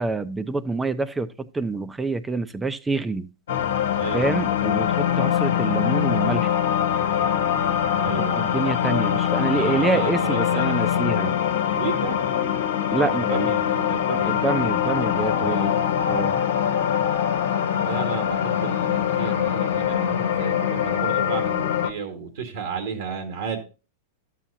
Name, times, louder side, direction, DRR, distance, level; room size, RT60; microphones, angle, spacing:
voice 1, 0.0-3.3 4.1-6.6 8.2-11.4 12.9-13.5 14.3-15.7 16.1-16.4, right 3 dB, 15° right, 0.7 m, -27 dB
sound 1, 3.5-21.9, left 9 dB, 80° left, 1.1 m, -23 dB
voice 2, 3.9-4.4 8.0-8.4 9.5-11.1 11.7-12.3 12.9-14.4 15.4-15.8 17.7-23.6, right 6 dB, 70° right, 1.7 m, -33 dB
12.5 x 7.5 x 2.7 m
hypercardioid pair, 110°, 0 cm